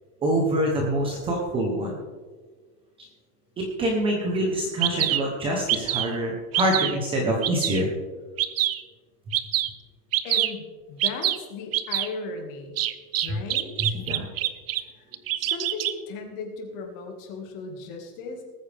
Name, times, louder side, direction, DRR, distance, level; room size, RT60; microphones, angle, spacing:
voice 1, 0.2-2.0 3.0-3.1 3.6-7.9 13.8-14.3, right 1 dB, 10° right, -1 dB, 1.0 m, -25 dB
Bird vocalization bird call bird song, 4.3-4.4 4.8-5.2 5.7-6.1 6.5-6.9 7.4-7.8 8.4-8.8 9.3-9.7 10.1-10.5 11.0-11.4 11.7-12.1 12.8-14.8 15.1-15.9, right 13 dB, 40° right, 0.5 m, -25 dB
voice 2, 10.2-12.8 13.2-14.0 15.0-15.1 15.4-18.4, left 4 dB, 35° left, 3 dB, 2.1 m, -36 dB
19.5 x 9.2 x 3.5 m, 1.4 s
supercardioid pair, 170°, 48 cm